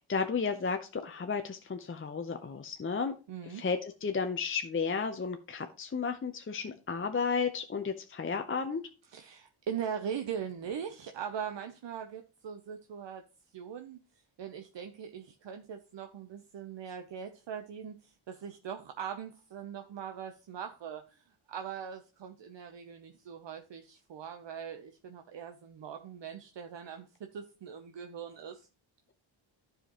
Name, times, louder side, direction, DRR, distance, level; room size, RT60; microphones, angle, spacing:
voice 1, 0.0-3.1 3.4-8.8, left 5 dB, 25° left, 6 dB, 0.6 m, -33 dB
voice 2, 3.3-3.6 9.1-13.2 13.5-14.0 14.4-21.2 21.5-28.7, right 8 dB, 65° right, 6 dB, 0.8 m, -41 dB
11.0 x 5.1 x 2.9 m, 0.33 s
cardioid pair, 65°, 48 cm